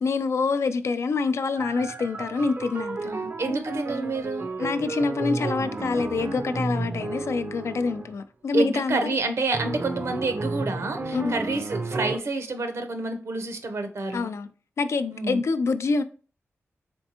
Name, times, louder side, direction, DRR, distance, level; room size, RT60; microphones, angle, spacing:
voice 1, 0.0-3.1 4.6-9.2 11.1-11.4 14.1-14.5 14.8-16.0, left 4 dB, 70° left, 0.4 m, -26 dB
sound 1, 1.6-8.2 9.5-12.2, right 2 dB, 40° right, 0.5 m, -32 dB
voice 2, 3.0-4.5 8.5-14.3 15.1-15.4, right 3 dB, 70° right, 0.8 m, -28 dB
4.4 x 3.3 x 2.9 m
wide cardioid pair, 75°, 5 cm